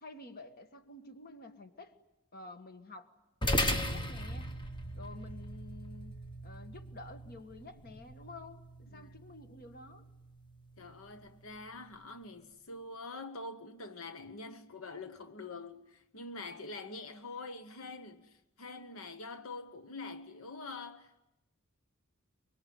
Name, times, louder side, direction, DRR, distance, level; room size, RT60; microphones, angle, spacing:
voice 1, 0.0-1.9 2.3-3.1 3.4-4.5 4.9-10.1, left 2 dB, 45° left, 1.7 m, -50 dB
sound 1, 3.4-12.1, equal, 20° left, 1.4 m, -39 dB
voice 2, 10.8-21.2, left 3 dB, 80° left, 1.1 m, -45 dB
24.0 x 23.5 x 9.4 m
head